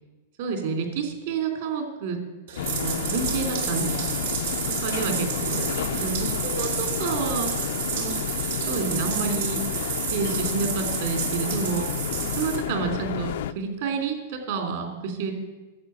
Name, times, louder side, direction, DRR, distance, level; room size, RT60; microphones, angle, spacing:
voice 1, 0.4-2.2 2.5-4.3 4.8-7.6 7.9-8.1 8.7-9.6 10.1-11.8 12.4-15.3, right 5 dB, 60° right, 4 dB, 3.2 m, -29 dB
Bathtub (filling or washing), 2.5-12.6, right 7 dB, 75° right, 3.0 m, -30 dB
sound 1, 2.6-13.5, left 10 dB, 70° left, 0.5 m, -31 dB
12.0 x 7.1 x 8.8 m, 1.2 s
hypercardioid pair, 145°, 0 cm